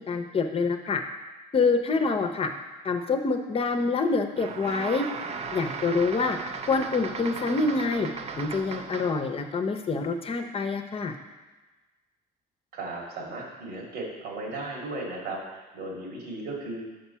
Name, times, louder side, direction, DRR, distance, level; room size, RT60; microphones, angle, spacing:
voice 1, 0.1-1.0 1.5-2.5 2.8-5.1 5.5-6.4 6.7-8.1 8.4-11.1, left 4 dB, 35° left, 6 dB, 0.7 m, -26 dB
sound 1, 4.3-9.3, right 5 dB, 40° right, 0.5 m, -36 dB
voice 2, 12.7-16.8, right 2 dB, 85° right, -2 dB, 2.2 m, -36 dB
6.0 x 5.2 x 5.6 m, 1.2 s
cardioid pair, 105°, 17 cm